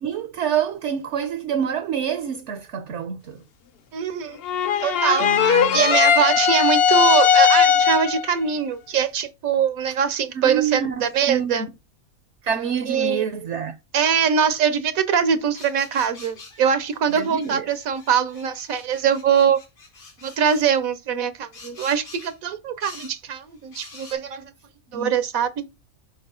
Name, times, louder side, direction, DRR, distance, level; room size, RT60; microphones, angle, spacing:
voice 1, 0.0-3.4 5.2-5.8 10.3-11.7 12.4-13.7 17.1-17.7 24.9-25.2, right 8 dB, 60° right, 0.9 m, -27 dB
voice 2, 3.9-4.4 4.8-5.3 5.7-11.6 12.9-13.2 13.9-19.6 20.2-24.5 24.9-25.7, right 7 dB, 80° right, 1.2 m, -22 dB
sound 1, 4.4-8.3, left 7 dB, 55° left, 0.7 m, -18 dB
sound 2, 15.5-20.7 21.5-22.4 22.8-23.2 23.7-24.1, left 3 dB, 80° left, 2.6 m, -45 dB
6.4 x 4.4 x 3.7 m
omnidirectional pair, 1.5 m